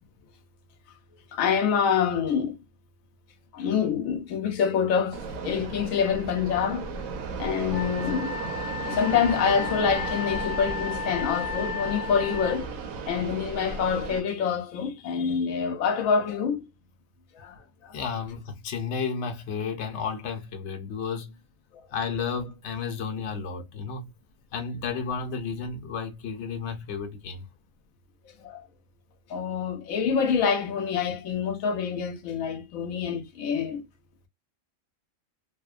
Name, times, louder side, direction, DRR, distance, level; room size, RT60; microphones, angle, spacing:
voice 1, 1.3-2.6 3.5-6.9 7.3-8.4 8.9-12.7 13.1-16.7 17.4-18.0 28.4-28.6 29.3-33.8, left 7 dB, 85° left, 1.0 m, -26 dB
Fixed-wing aircraft airplane, 5.1-14.2, right 5 dB, 85° right, 1.0 m, -35 dB
Wind instrument woodwind instrument, 7.7-12.6, left 7 dB, 20° left, 0.5 m, -34 dB
voice 2, 17.9-21.4 21.9-24.1 24.5-27.5, left 5 dB, 65° left, 0.9 m, -32 dB
2.8 x 2.0 x 2.3 m
omnidirectional pair, 1.4 m